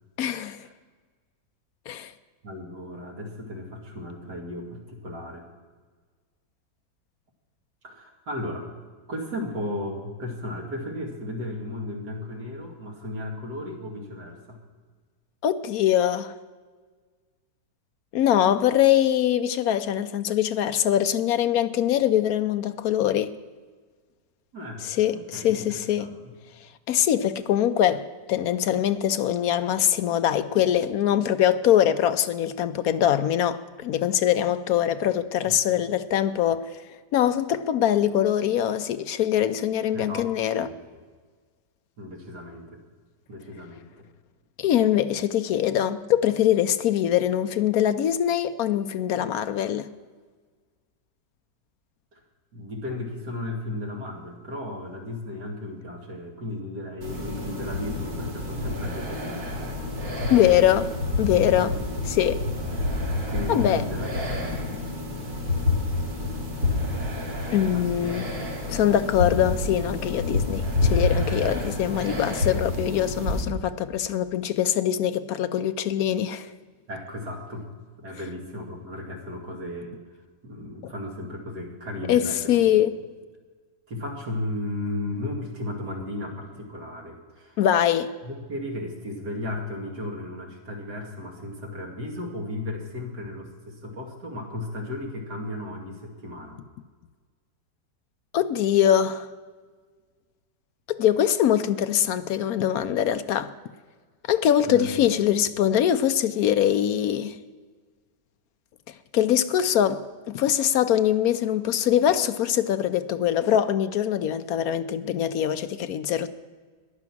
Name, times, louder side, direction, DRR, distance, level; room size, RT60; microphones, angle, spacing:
voice 1, 0.2-0.6 1.9-2.1 15.4-16.3 18.1-23.3 24.8-26.1 26.9-36.7 37.1-40.7 44.6-49.9 60.3-60.9 61.2-61.8 62.0-62.4 63.5-63.8 67.5-68.3 68.7-76.5 82.1-82.9 87.6-88.1 98.3-99.3 100.9-103.5 104.3-107.4 109.1-116.3, left 10 dB, 70° left, 0.9 m, -23 dB
voice 2, 2.4-5.5 7.8-8.6 9.1-14.6 24.5-24.8 25.1-26.3 35.4-35.5 39.9-40.3 40.6-40.7 42.0-42.8 43.3-44.0 52.1-52.2 52.5-59.5 63.3-64.6 67.7-68.2 76.9-77.7 78.0-80.0 80.4-82.8 83.9-87.6 88.2-96.6 104.7-105.2, left 1 dB, 65° right, 2.9 m, -35 dB
sound 1, 57.0-73.4, left 2 dB, 85° right, 3.6 m, -28 dB
14.5 x 10.5 x 6.1 m
omnidirectional pair, 1.9 m